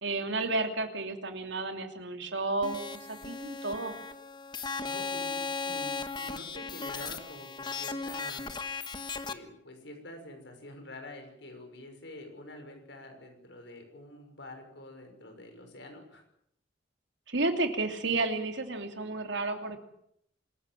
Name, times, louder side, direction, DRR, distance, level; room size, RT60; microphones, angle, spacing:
voice 1, 0.0-4.0 17.3-19.8, right 3 dB, 70° right, 6 dB, 3.0 m, -32 dB
sound 1, 2.6-9.3, left 4 dB, 25° left, 1.3 m, -37 dB
voice 2, 4.8-8.4 9.2-16.2, left 1 dB, 65° left, 5 dB, 6.2 m, -47 dB
26.0 x 14.5 x 9.1 m, 0.74 s
head